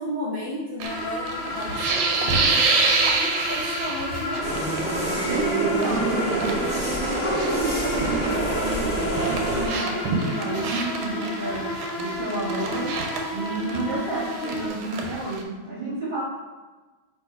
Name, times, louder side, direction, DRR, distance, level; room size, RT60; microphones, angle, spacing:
voice 1, 0.0-2.7 3.1-4.9 7.5-7.8, left 1 dB, 75° left, -10 dB, 0.5 m, -34 dB
sound 1, 0.8-14.7, left 2 dB, 55° left, 0.9 m, -32 dB
sound 2, 0.8-4.8 5.0-5.4 5.8-8.3 8.6-15.4, right 4 dB, 75° right, 1.2 m, -28 dB
sound 3, 4.4-9.7, right 2 dB, 5° right, 1.0 m, -26 dB
voice 2, 5.2-6.7 7.0-13.0 13.3-16.3, right 2 dB, 35° right, -9 dB, 0.9 m, -30 dB
3.5 x 2.9 x 4.7 m, 1.3 s
omnidirectional pair, 2.3 m